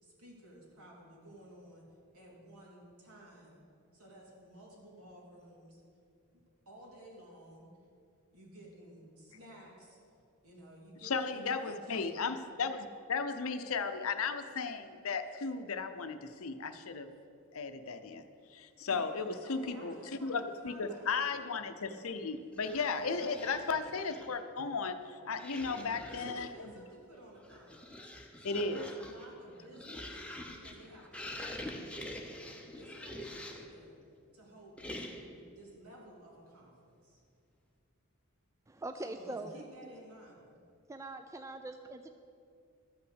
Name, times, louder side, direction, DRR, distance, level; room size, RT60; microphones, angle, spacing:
voice 1, 0.0-1.9 2.1-3.6 3.9-5.8 6.7-7.7 8.3-10.0 10.4-12.0 18.9-21.1 22.8-23.7 25.6-30.2 30.5-34.0 34.3-37.2 39.0-40.6, right 1 dB, 75° right, -3 dB, 2.9 m, -54 dB
voice 2, 11.0-17.1 17.5-18.2 18.5-26.7 28.4-28.8, left 4 dB, 65° left, 9 dB, 0.7 m, -35 dB
sound 1, 22.5-24.4 25.3-26.6 27.3-33.8 34.8-35.4, left 1 dB, 5° left, 0.7 m, -46 dB
voice 3, 38.7-39.6 40.9-42.1, right 2 dB, 15° right, 7 dB, 0.3 m, -42 dB
13.0 x 5.7 x 8.1 m, 2.4 s
head